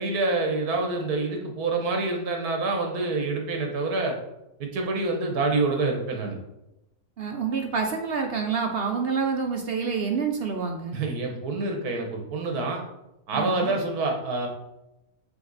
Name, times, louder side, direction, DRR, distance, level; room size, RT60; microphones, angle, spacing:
voice 1, 0.0-4.2 4.6-6.4 10.9-12.8 13.3-14.5, right 3 dB, 75° right, 2 dB, 1.5 m, -27 dB
voice 2, 7.2-11.0 13.3-13.7, right 5 dB, 60° right, 3 dB, 0.6 m, -27 dB
5.8 x 4.1 x 4.0 m, 0.90 s
omnidirectional pair, 1.6 m